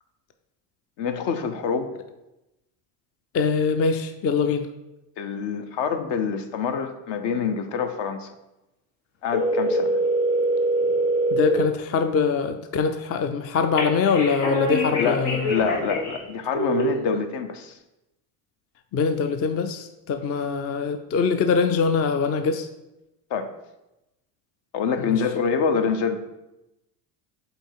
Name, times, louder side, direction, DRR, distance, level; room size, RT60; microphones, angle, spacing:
voice 1, 1.0-1.9 5.2-8.3 9.2-10.0 14.9-17.8 23.3-23.5 24.7-26.2, left 6 dB, 60° left, 8 dB, 0.8 m, -26 dB
voice 2, 3.3-4.7 11.3-15.5 18.9-22.7 25.0-25.1, left 5 dB, 30° left, 8 dB, 0.4 m, -23 dB
sound 1, 9.3-11.6 13.8-16.2 16.5-16.8, right 1 dB, 85° left, 1.6 m, -24 dB
5.2 x 4.0 x 4.6 m, 0.95 s
supercardioid pair, 90°, 48 cm